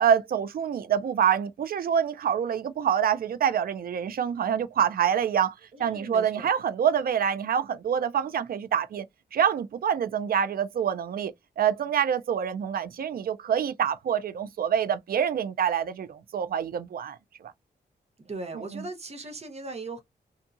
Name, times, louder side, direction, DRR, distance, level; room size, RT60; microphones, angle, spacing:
voice 1, 0.0-5.5 5.8-9.1 9.3-17.5 18.5-18.8, right 8 dB, 60° right, 0.4 m, -26 dB
voice 2, 5.7-6.5 18.2-20.0, right 3 dB, 40° right, 0.8 m, -38 dB
2.7 x 2.6 x 2.3 m
wide cardioid pair, 150°, 17 cm